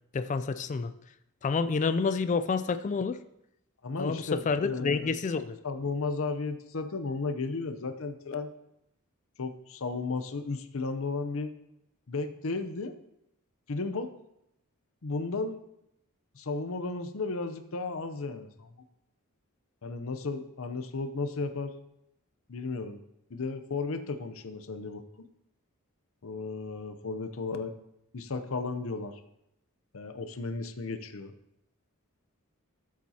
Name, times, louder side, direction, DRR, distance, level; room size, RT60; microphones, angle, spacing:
voice 1, 0.1-0.9 1.4-3.2 4.0-5.6, left 4 dB, 35° left, 11 dB, 0.3 m, -28 dB
voice 2, 3.8-5.2 5.6-8.5 9.4-11.5 12.1-12.9 13.7-14.1 15.0-15.6 16.4-18.7 19.8-21.7 22.5-23.0 23.3-25.2 26.2-27.7 28.1-29.2 29.9-31.3, left 3 dB, 65° left, 9 dB, 0.7 m, -34 dB
13.0 x 7.4 x 2.8 m, 0.82 s
head